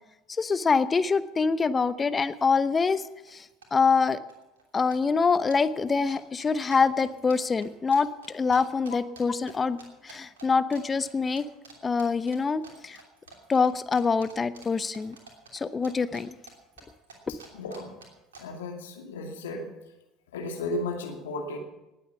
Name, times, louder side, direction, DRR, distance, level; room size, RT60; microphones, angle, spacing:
voice 1, 0.3-3.0 3.3-4.2 4.7-11.5 11.8-13.0 13.5-15.2 15.5-16.4, left 5 dB, 25° left, 14 dB, 0.8 m, -25 dB
sound 1, 2.3-2.4 2.6-3.0 3.3-4.0 4.3-4.7 4.9-9.5 9.8-10.5 10.7-11.1 11.3-11.7 12.0-16.2 16.5-18.4, right 4 dB, 75° right, 2.9 m, -49 dB
voice 2, 17.5-17.9 18.4-19.7 20.3-21.6, left 2 dB, 75° left, 2 dB, 2.4 m, -34 dB
19.0 x 8.3 x 7.1 m, 0.98 s
figure-of-eight pair, 65°, 0 cm